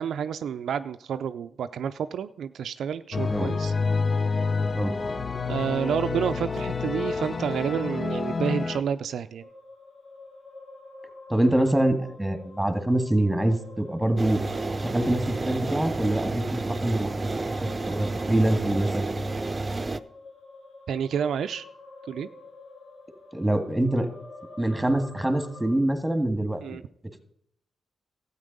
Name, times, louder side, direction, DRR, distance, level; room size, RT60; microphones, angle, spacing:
voice 1, 0.0-3.7 5.5-9.5 20.9-21.6 22.1-22.3 26.6-26.8, right 8 dB, 75° right, 10 dB, 0.4 m, -29 dB
sound 1, 3.1-8.8, left 4 dB, 45° left, 0.7 m, -28 dB
sound 2, 9.4-25.8, left 1 dB, 85° left, 3.1 m, -46 dB
voice 2, 11.3-14.4 14.8-17.3 17.6-19.1 23.3-24.1 24.6-26.6, right 1 dB, 10° right, 8 dB, 1.8 m, -25 dB
sound 3, 14.2-20.0, right 2 dB, 30° right, 0.6 m, -30 dB
12.5 x 8.7 x 5.2 m, 0.70 s
supercardioid pair, 55°, 0 cm